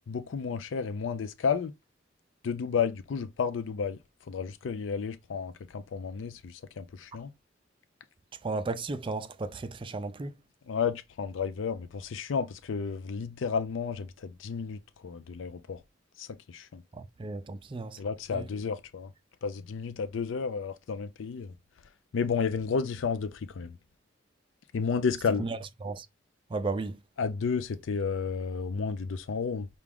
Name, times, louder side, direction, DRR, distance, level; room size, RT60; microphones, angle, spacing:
voice 1, 0.1-1.7 2.4-4.0 4.3-7.3 10.7-15.8 16.2-16.8 18.0-19.1 19.4-21.5 22.1-23.7 24.7-25.5 27.2-29.7, left 5 dB, 80° left, 0.4 m, -32 dB
voice 2, 8.4-10.3 16.9-18.0 18.3-18.5 25.4-26.1 26.5-27.0, right 3 dB, 25° right, 0.4 m, -34 dB
5.9 x 2.3 x 3.5 m
head